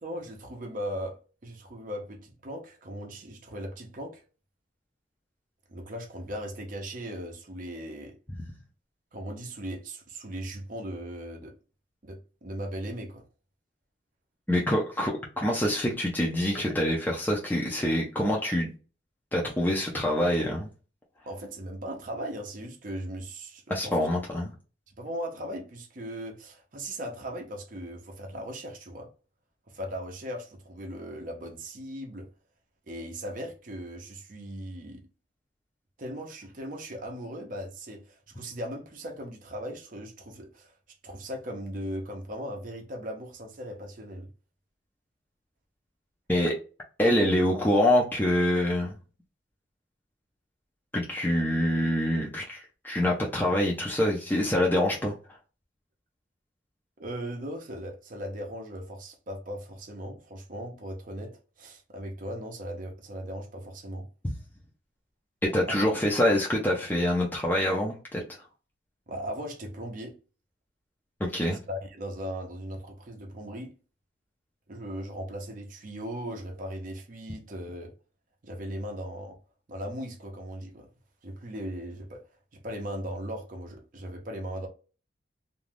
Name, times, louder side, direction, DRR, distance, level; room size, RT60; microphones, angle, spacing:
voice 1, 0.0-4.2 5.7-8.2 9.1-11.5 12.0-13.2 21.3-24.1 25.0-29.1 29.7-32.3 32.9-35.1 36.0-40.7 41.0-44.3 57.0-64.1 65.7-65.8 69.1-70.2 71.4-73.7 74.7-77.9 78.4-79.4 79.7-80.9 81.2-82.2 82.5-84.7, equal, 45° right, 0.6 m, -38 dB
voice 2, 14.5-18.7 19.3-20.7 23.7-24.5 46.3-46.5 47.0-49.0 50.9-55.1 64.2-64.3 65.4-68.2 71.2-71.6, left 1 dB, 10° left, 0.5 m, -25 dB
2.5 x 2.3 x 3.3 m
head